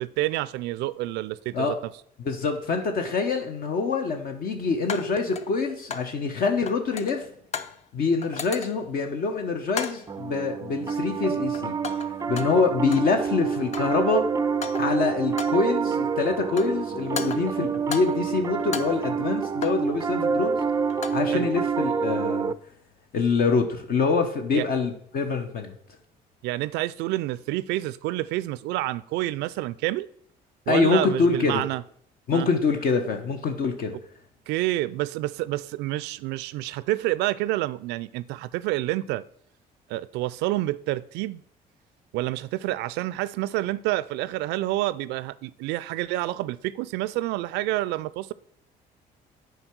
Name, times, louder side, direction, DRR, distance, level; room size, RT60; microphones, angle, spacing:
voice 1, 0.0-1.8 21.3-21.5 24.5-24.7 26.4-30.1 30.7-31.8 32.3-32.5 34.5-39.2 39.9-41.4 42.1-48.3, right 16 dB, 90° right, 0.4 m, -28 dB
voice 2, 2.2-7.2 7.9-11.7 12.3-14.2 14.8-20.6 21.1-22.5 23.1-25.7 30.7-31.6 32.3-34.0, left 4 dB, 60° left, 1.0 m, -25 dB
sound 1, 2.6-2.7 4.9-6.2 6.4-7.8 8.2-8.9 9.7-10.2 10.9-11.2 11.5-13.2 13.5-14.0 14.5-15.0 15.4-15.7 16.3-16.8 17.2-18.3 18.6-19.9 20.8-21.3, left 5 dB, 40° left, 0.6 m, -36 dB
Piano, 10.1-22.5, right 6 dB, 20° right, 0.4 m, -27 dB
8.0 x 4.7 x 6.0 m
cardioid pair, 110°, 17 cm